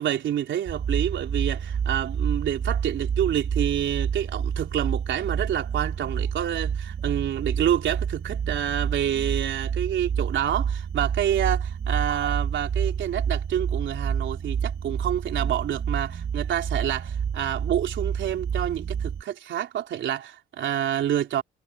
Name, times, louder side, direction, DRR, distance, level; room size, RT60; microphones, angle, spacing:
voice 1, 0.0-21.4, right 10 dB, 70° right, 3.6 m, -28 dB
sound 1, 0.7-19.2, right 7 dB, 50° right, 2.3 m, -29 dB
cardioid pair, 90°, 20 cm